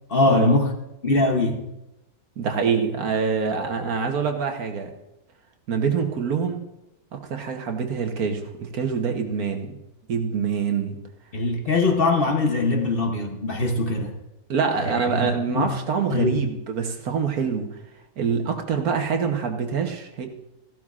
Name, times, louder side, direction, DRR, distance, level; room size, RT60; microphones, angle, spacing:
voice 1, 0.1-0.7 1.0-1.7 11.3-14.2 14.8-15.7 16.1-16.4, left 2 dB, 45° left, 3 dB, 1.0 m, -22 dB
voice 2, 2.4-4.9 5.7-6.6 7.1-9.8 10.1-11.0 14.5-17.7 18.2-20.3, right 6 dB, 75° right, 4 dB, 1.6 m, -25 dB
15.0 x 12.0 x 2.5 m, 0.93 s
omnidirectional pair, 1.6 m